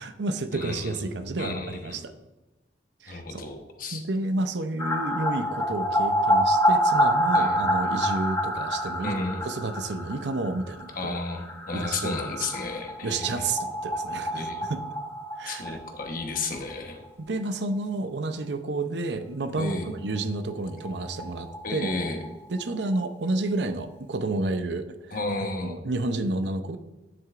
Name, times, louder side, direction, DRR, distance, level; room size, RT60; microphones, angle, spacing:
voice 1, 0.0-2.1 3.0-3.5 3.9-9.1 9.4-11.2 11.7-12.5 13.0-14.8 15.4-15.8 17.2-21.9 22.5-26.8, right 2 dB, 70° right, 9 dB, 0.7 m, -30 dB
voice 2, 0.5-1.0 1.4-2.1 3.1-4.0 7.3-7.6 9.0-9.5 11.0-13.5 14.3-14.6 15.4-17.0 19.6-19.9 21.6-22.2 25.1-25.7, left 2 dB, 50° left, 3 dB, 1.1 m, -32 dB
sound 1, 4.8-16.4 16.7-16.8 17.0-17.1 20.2-20.3 20.5-20.6 20.8-22.6 22.9-23.0, equal, 15° left, 1.4 m, -27 dB
9.4 x 7.7 x 2.5 m, 1.1 s
head